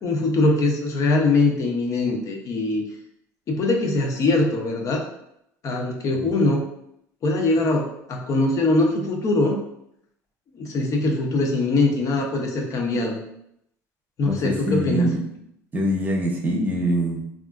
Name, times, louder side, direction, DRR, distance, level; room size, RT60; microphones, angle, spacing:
voice 1, 0.0-2.8 3.5-5.0 5.6-6.6 7.2-9.6 10.6-13.2 14.2-15.1, left 2 dB, 50° left, 1 dB, 0.6 m, -22 dB
voice 2, 14.3-15.2 15.7-17.2, equal, 25° right, 1 dB, 0.7 m, -24 dB
3.5 x 2.4 x 2.3 m, 0.77 s
supercardioid pair, 100°, 7 cm